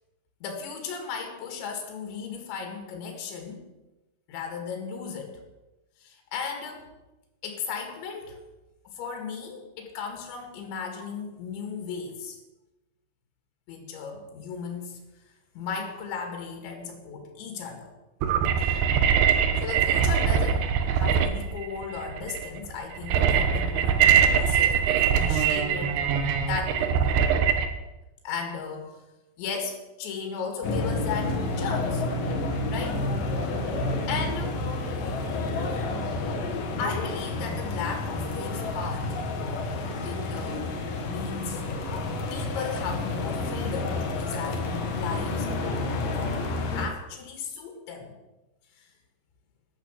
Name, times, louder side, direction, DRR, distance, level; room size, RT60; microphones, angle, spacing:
voice 1, 0.4-3.7 4.3-5.4 6.0-6.9 7.4-8.4 8.9-12.4 13.7-15.0 15.6-17.9 18.6-18.9 19.6-26.0 26.4-26.9 28.2-29.0 29.4-32.0 32.7-33.0 33.7-34.7 35.7-35.8 36.8-39.1 40.0-40.7 41.0-41.6 42.3-45.5 46.1-46.4 46.8-48.2 48.8-48.9, left 6 dB, 85° left, 3 dB, 4.4 m, -36 dB
sound 1, 18.2-27.7, right 7 dB, 70° right, 2.8 m, -22 dB
sound 2, 30.6-46.9, left 2 dB, 60° left, 2.9 m, -30 dB
14.0 x 11.5 x 6.4 m, 1.0 s
omnidirectional pair, 5.1 m